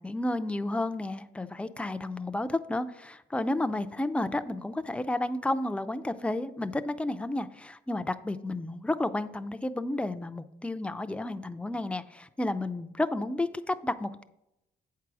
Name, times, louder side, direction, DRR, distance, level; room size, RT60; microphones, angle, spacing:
voice 1, 0.0-14.2, left 2 dB, 5° left, 10 dB, 0.4 m, -31 dB
8.2 x 4.7 x 6.1 m, 0.87 s
cardioid pair, 90°, 20 cm